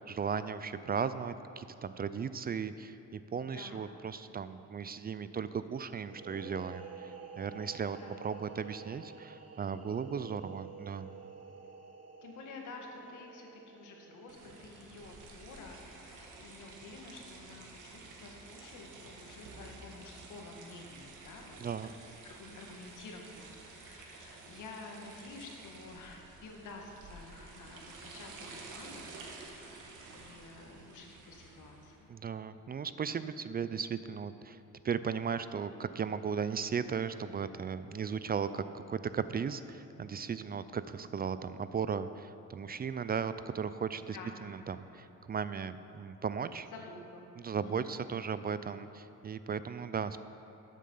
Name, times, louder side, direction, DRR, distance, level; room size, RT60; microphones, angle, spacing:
voice 1, 0.0-11.1 21.6-21.9 32.1-34.6 34.8-44.2 44.4-46.7 47.4-50.2, right 6 dB, 30° right, 13 dB, 0.4 m, -36 dB
voice 2, 3.4-4.0 8.0-8.3 12.2-21.6 22.2-32.1 44.1-44.4 46.7-47.3 47.6-48.0, left 3 dB, 80° left, 1 dB, 1.8 m, -50 dB
sound 1, 6.0-15.5, right 6 dB, 55° right, 1.4 m, -51 dB
sound 2, 14.3-32.0, right 3 dB, 85° right, 1.7 m, -51 dB
12.5 x 7.4 x 5.5 m, 2.9 s
cardioid pair, 90°, 30 cm